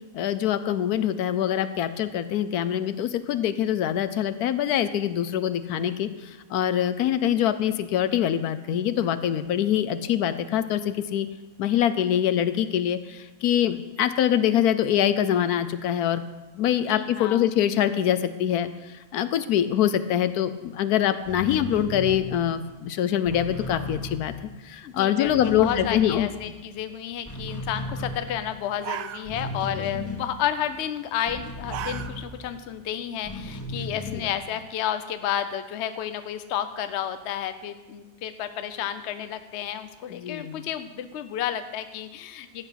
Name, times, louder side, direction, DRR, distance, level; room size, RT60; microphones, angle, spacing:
voice 1, 0.1-11.3 11.6-16.2 16.6-24.3 24.6-26.3 29.7-29.9 34.1-34.2 40.1-40.6, left 10 dB, 75° left, 12 dB, 1.1 m, -24 dB
voice 2, 16.9-17.5 24.8-42.7, left 10 dB, 55° left, 10 dB, 0.9 m, -31 dB
sound 1, 21.1-24.8 25.1-26.8 27.1-32.7 33.2-34.4, left 2 dB, 10° left, 1.6 m, -36 dB
sound 2, 28.3-28.4 28.7-29.7 30.0-30.4 31.4-32.4 32.8-32.9 33.5-34.5, right 10 dB, 70° right, 0.9 m, -36 dB
13.0 x 8.2 x 5.8 m, 1.2 s
omnidirectional pair, 1.6 m